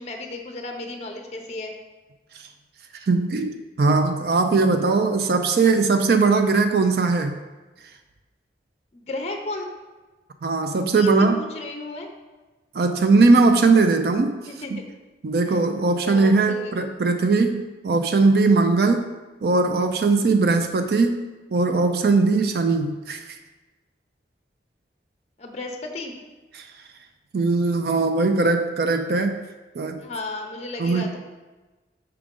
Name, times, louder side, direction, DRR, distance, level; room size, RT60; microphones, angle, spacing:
voice 1, 0.0-1.7 8.9-9.7 11.0-12.1 14.5-14.8 15.5-15.6 16.0-16.9 25.4-26.1 30.0-31.2, left 2 dB, 35° left, 4 dB, 0.5 m, -34 dB
voice 2, 3.1-7.3 10.4-11.4 12.7-14.3 15.2-19.0 19.4-21.2 21.5-23.2 26.6-26.7 27.3-29.4 29.8-30.0 30.8-31.1, right 3 dB, 60° right, 6 dB, 0.4 m, -20 dB
5.8 x 5.0 x 3.6 m, 1.2 s
head